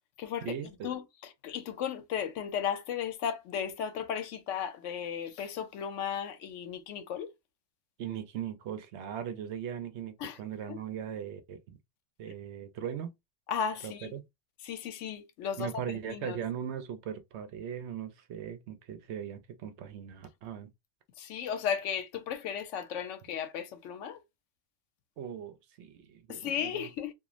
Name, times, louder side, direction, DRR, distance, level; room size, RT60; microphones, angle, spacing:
voice 1, 0.4-0.9 8.0-11.8 12.2-13.1 13.8-14.2 15.6-20.7 25.2-26.9, right 9 dB, 70° right, 0.8 m, -39 dB
voice 2, 1.4-7.3 10.2-10.4 10.7-10.8 13.5-14.1 14.6-15.7 16.1-16.4 21.2-24.2 26.3-27.1, left 8 dB, 80° left, 0.9 m, -35 dB
3.0 x 2.4 x 2.4 m
omnidirectional pair, 1.3 m